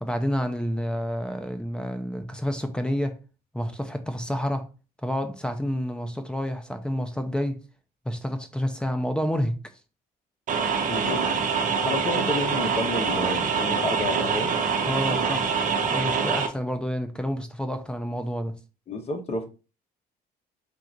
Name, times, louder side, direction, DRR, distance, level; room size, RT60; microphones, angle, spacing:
voice 1, 0.0-3.2 3.5-4.7 5.0-7.6 8.1-9.5 14.9-15.5 15.9-18.6, equal, 5° left, 0.6 m, -29 dB
sound 1, 10.5-16.5, right 5 dB, 50° right, 0.8 m, -25 dB
voice 2, 10.9-11.2 11.8-14.5 18.9-19.5, left 2 dB, 40° left, 1.0 m, -30 dB
3.8 x 2.5 x 4.4 m
cardioid pair, 110°, 17 cm